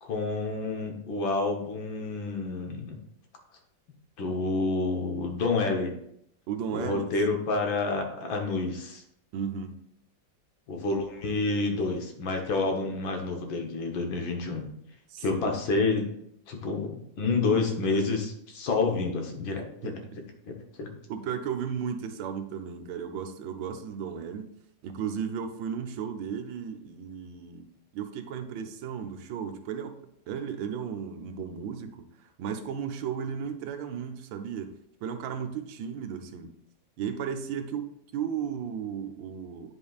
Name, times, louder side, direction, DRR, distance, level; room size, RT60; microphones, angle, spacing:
voice 1, 0.0-3.0 4.2-5.9 6.7-9.0 10.7-14.7 15.2-16.1 16.5-19.9 20.5-20.6 20.8-20.9, left 3 dB, 85° left, 3 dB, 1.8 m, -29 dB
voice 2, 6.5-7.1 9.3-9.8 15.1-15.6 19.8-20.2 21.1-24.5 24.8-27.7 27.9-30.0 30.3-34.7 35.0-36.5 37.0-37.9 38.1-39.8, right 7 dB, 80° right, 7 dB, 1.4 m, -35 dB
9.3 x 5.3 x 2.4 m, 0.75 s
omnidirectional pair, 2.1 m